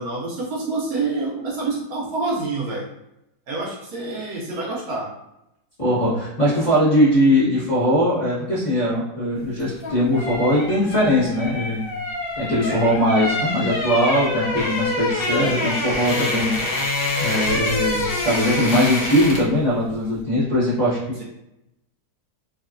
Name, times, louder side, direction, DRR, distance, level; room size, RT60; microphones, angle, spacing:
voice 1, 0.0-2.8 3.5-5.1 12.7-12.9, right 3 dB, 70° right, -3 dB, 1.0 m, -27 dB
voice 2, 5.8-11.9 12.4-16.6 17.2-21.2, equal, 30° left, -9 dB, 1.0 m, -20 dB
sound 1, 9.6-19.6 19.9-20.1, left 2 dB, 80° left, 0.5 m, -26 dB
2.9 x 2.5 x 2.4 m, 0.87 s
omnidirectional pair, 1.8 m